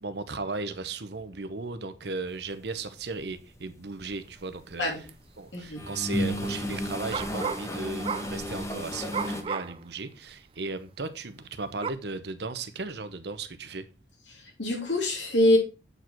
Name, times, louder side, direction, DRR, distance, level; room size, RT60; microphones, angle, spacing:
voice 1, 0.0-4.9 5.4-13.8, right 3 dB, 65° right, 0.8 m, -36 dB
sound 1, 3.0-3.3 3.8-5.1 5.5-9.4, equal, 15° left, 1.1 m, -33 dB
sound 2, 5.1-5.2 5.5-5.9 7.1-7.7 8.0-8.4 9.1-9.8 10.3-10.4 11.8-11.9, right 6 dB, 30° right, 0.3 m, -33 dB
voice 2, 14.3-15.6, left 1 dB, 85° left, 3.0 m, -24 dB
7.9 x 4.9 x 4.4 m
head